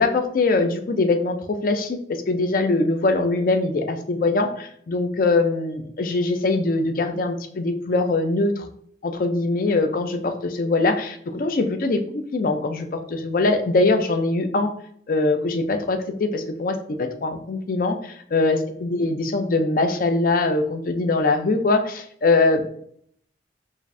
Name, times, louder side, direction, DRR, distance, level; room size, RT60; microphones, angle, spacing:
voice 1, 0.0-8.7 9.0-14.7 15.1-22.6, left 3 dB, 50° left, 7 dB, 0.4 m, -22 dB
5.0 x 2.5 x 2.6 m, 0.65 s
head